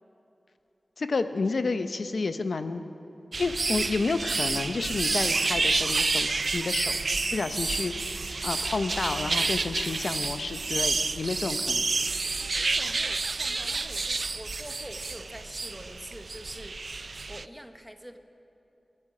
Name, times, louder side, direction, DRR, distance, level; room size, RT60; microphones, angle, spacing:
voice 1, 1.0-2.8 3.4-7.0 7.3-11.9, left 3 dB, 75° left, 10 dB, 0.7 m, -30 dB
sound 1, 3.3-17.4, right 3 dB, 60° right, 0.4 m, -29 dB
voice 2, 12.5-18.2, equal, 5° right, 7 dB, 0.9 m, -45 dB
25.0 x 11.0 x 4.9 m, 3.0 s
wide cardioid pair, 75°, 0 cm